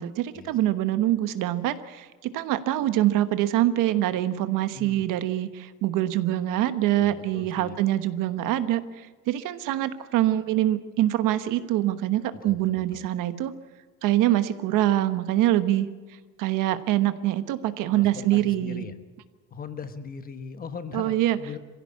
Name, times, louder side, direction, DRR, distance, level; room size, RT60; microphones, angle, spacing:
voice 1, 0.0-8.8 9.3-13.5 14.0-15.9 16.4-18.9 20.9-21.4, right 13 dB, 80° right, 11 dB, 1.2 m, -24 dB
voice 2, 4.7-5.0 7.0-7.8 12.4-13.1 17.9-18.9 19.5-21.6, left 5 dB, 30° left, 10 dB, 1.1 m, -39 dB
23.5 x 15.5 x 8.4 m, 1.3 s
cardioid pair, 180°, 31 cm